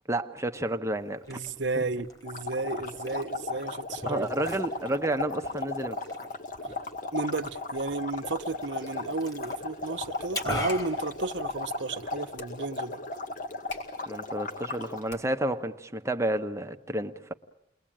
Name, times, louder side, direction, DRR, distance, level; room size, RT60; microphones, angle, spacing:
voice 1, 0.1-1.4 1.8-1.9 4.1-6.0 14.1-17.3, right 1 dB, 15° right, 1.0 m, -31 dB
Liquid, 1.0-12.0, left 1 dB, 20° left, 4.2 m, -42 dB
voice 2, 1.3-4.3 7.1-13.0, right 3 dB, 75° right, 1.1 m, -33 dB
Bubbling Water, 2.3-15.1, left 3 dB, 45° left, 1.7 m, -36 dB
sound 1, 10.5-15.6, left 3 dB, 90° left, 5.9 m, -50 dB
29.5 x 21.5 x 8.9 m
head